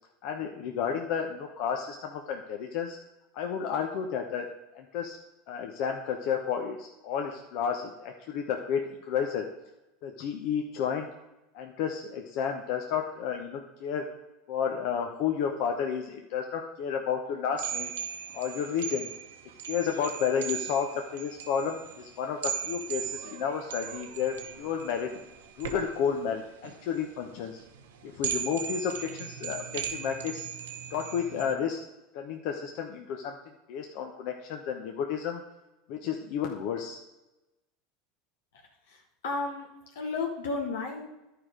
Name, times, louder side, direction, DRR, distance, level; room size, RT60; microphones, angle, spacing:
voice 1, 0.2-3.0 3.3-4.5 4.7-5.2 5.5-9.5 10.0-11.1 11.5-14.1 14.5-17.9 18.3-19.1 19.7-25.1 25.6-27.6 28.0-30.5 30.9-31.8 32.1-35.4 35.9-37.0, left 7 dB, 65° left, 3 dB, 0.9 m, -31 dB
sound 1, 17.6-31.6, right 8 dB, 90° right, 0.9 m, -38 dB
voice 2, 38.9-39.7 39.9-41.1, left 3 dB, 85° left, 0 dB, 1.1 m, -33 dB
11.0 x 4.8 x 5.0 m, 0.98 s
supercardioid pair, 110°, 0 cm